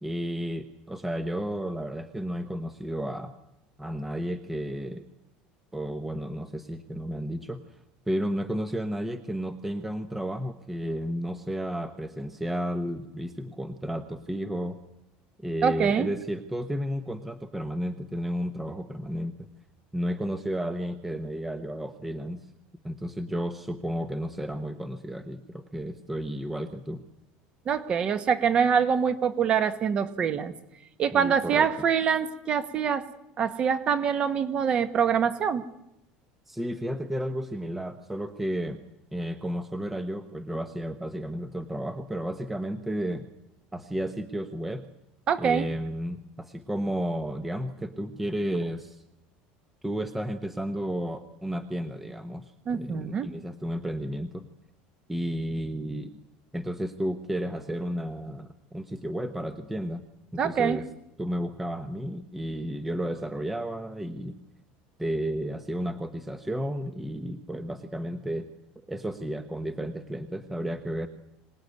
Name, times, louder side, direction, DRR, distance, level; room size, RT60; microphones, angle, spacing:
voice 1, 0.0-3.3 3.8-5.0 5.7-7.8 8.1-14.8 15.4-19.5 19.9-22.5 22.8-27.0 31.1-31.7 36.5-38.8 39.1-43.3 43.7-44.9 45.4-49.0 49.8-54.5 55.1-56.2 56.5-60.0 60.3-60.9 61.2-64.4 65.0-68.5 68.9-71.1, equal, 5° right, 9 dB, 0.9 m, -32 dB
voice 2, 15.6-16.1 27.7-30.5 31.0-33.1 33.4-35.6 45.3-45.7 52.7-53.3 60.4-60.8, right 7 dB, 25° right, 12 dB, 1.3 m, -25 dB
25.0 x 19.0 x 9.5 m, 0.88 s
cardioid pair, 175°, 4 cm